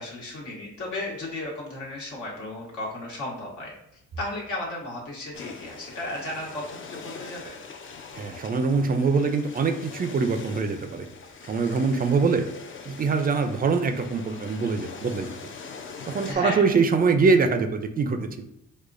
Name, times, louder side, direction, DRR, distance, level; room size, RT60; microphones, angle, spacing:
voice 1, 0.0-3.7 4.2-7.6 16.2-16.8, left 1 dB, 75° left, -4 dB, 1.4 m, -34 dB
sound 1, 5.3-16.3, left 5 dB, 40° left, 0.5 m, -42 dB
voice 2, 8.1-11.1 11.4-12.5 12.9-15.3 16.1-18.4, right 4 dB, 30° right, 7 dB, 0.4 m, -23 dB
4.7 x 2.2 x 2.5 m, 0.81 s
cardioid pair, 90°, 30 cm